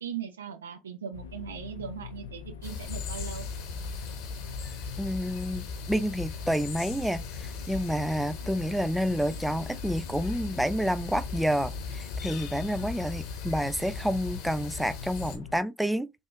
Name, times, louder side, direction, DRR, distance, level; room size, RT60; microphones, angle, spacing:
voice 1, 0.0-3.5, right 8 dB, 85° right, 0.6 m, -39 dB
sound 1, 1.1-15.6, left 7 dB, 80° left, 0.4 m, -44 dB
sound 2, 2.6-15.4, left 4 dB, 65° left, 1.1 m, -38 dB
voice 2, 5.0-16.1, equal, 5° right, 0.3 m, -29 dB
3.4 x 2.6 x 3.4 m
hypercardioid pair, 65°, 0 cm